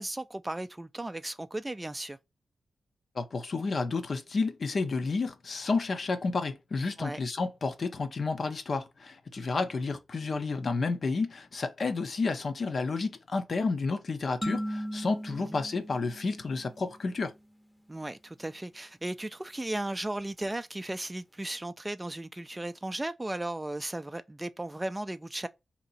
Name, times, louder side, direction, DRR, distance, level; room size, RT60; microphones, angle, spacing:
voice 1, 0.0-2.2 7.0-7.2 9.6-9.7 15.3-15.6 17.9-25.5, right 1 dB, 20° right, 0.3 m, -36 dB
voice 2, 3.1-17.3, left 4 dB, 55° left, 0.6 m, -31 dB
sound 1, 14.4-17.1, equal, 15° left, 0.7 m, -37 dB
2.9 x 2.6 x 4.0 m
cardioid pair, 80°, 0 cm